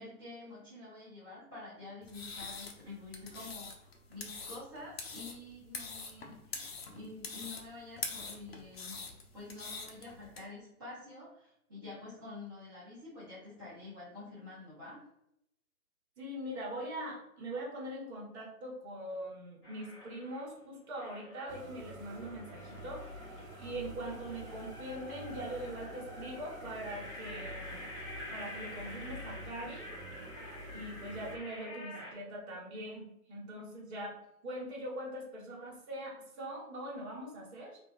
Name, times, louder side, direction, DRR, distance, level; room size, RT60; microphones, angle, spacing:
voice 1, 0.0-9.1 9.3-15.0, left 2 dB, 15° right, -14 dB, 0.5 m, -48 dB
sound 1, 2.0-10.4, left 4 dB, 45° left, 0.4 m, -44 dB
voice 2, 16.2-27.8 28.3-29.8 30.7-34.2 34.4-37.8, right 1 dB, 45° right, -3 dB, 1.1 m, -42 dB
sound 2, 19.6-20.5 21.0-32.1, left 1 dB, 15° left, 0.8 m, -48 dB
sound 3, 21.5-31.4, right 1 dB, 60° right, 0.5 m, -48 dB
2.7 x 2.2 x 2.5 m, 0.79 s
figure-of-eight pair, 130°, 45 cm